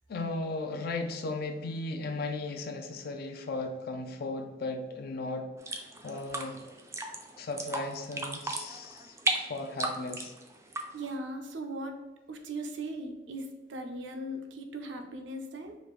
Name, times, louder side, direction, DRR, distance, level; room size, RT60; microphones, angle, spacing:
voice 1, 0.1-6.7 7.4-10.3, left 2 dB, 55° left, 6 dB, 0.4 m, -36 dB
sound 1, 5.6-11.1, right 2 dB, 15° right, 0.4 m, -35 dB
voice 2, 10.9-11.9 12.3-15.8, right 1 dB, 75° right, 5 dB, 0.6 m, -38 dB
4.9 x 2.5 x 3.1 m, 1.1 s
head